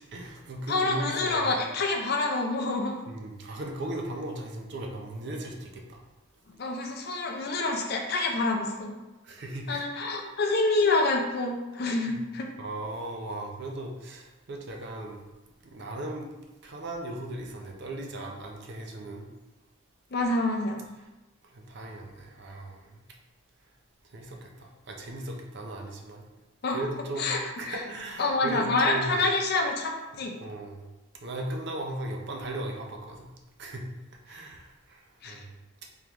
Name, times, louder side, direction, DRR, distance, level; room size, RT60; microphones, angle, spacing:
voice 1, 0.0-1.5 3.1-6.0 9.2-9.8 12.1-12.2 12.6-15.2 15.6-16.3 16.6-19.2 21.5-23.0 24.1-26.2 26.7-27.3 27.6-29.2 30.4-30.9 31.2-33.3 33.6-33.9 34.2-35.5, right 1 dB, 50° right, 1 dB, 0.5 m, -37 dB
voice 2, 0.7-3.0 6.6-9.0 9.7-12.5 20.1-20.8 26.6-26.8 27.2-27.8 28.2-30.3 35.2-35.4, left 2 dB, 45° left, 2 dB, 0.5 m, -27 dB
3.6 x 3.4 x 2.9 m, 1.1 s
head